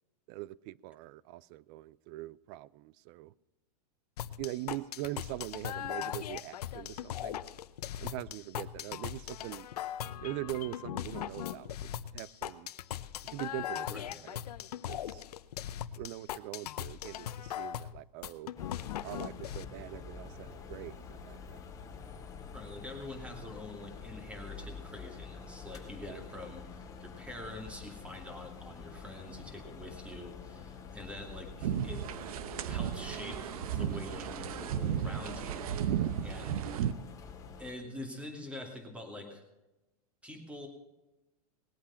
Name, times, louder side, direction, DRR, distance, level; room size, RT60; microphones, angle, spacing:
voice 1, 0.3-3.3 4.4-7.4 8.0-9.7 10.2-12.7 13.2-14.4 14.9-15.2 15.9-18.5 19.0-21.6 26.1-26.2, right 16 dB, 40° right, 0.4 m, -42 dB
sound 1, 4.2-19.6, left 11 dB, 85° left, 0.8 m, -39 dB
voice 2, 13.9-14.2 22.5-32.0 32.7-36.6 37.6-39.4 40.2-40.7, left 1 dB, 5° right, 2.5 m, -45 dB
sound 2, 18.6-37.7, left 5 dB, 15° left, 2.1 m, -47 dB
sound 3, 31.6-36.9, right 9 dB, 70° right, 0.9 m, -34 dB
19.5 x 8.5 x 5.6 m
supercardioid pair, 145°, 19 cm